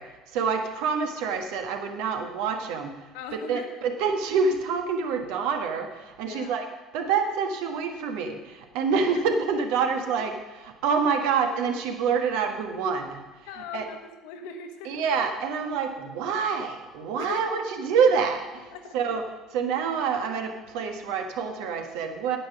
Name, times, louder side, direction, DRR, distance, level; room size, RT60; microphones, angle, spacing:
voice 1, 0.0-6.7 6.9-13.2 13.7-13.9 14.8-22.4, right 5 dB, 60° right, 5 dB, 1.4 m, -27 dB
voice 2, 3.1-3.8 6.2-6.6 9.1-9.2 13.4-15.0 17.2-17.6 18.7-19.0, left 6 dB, 65° left, 6 dB, 1.2 m, -39 dB
9.8 x 9.4 x 6.1 m, 1.2 s
figure-of-eight pair, 55°, 0 cm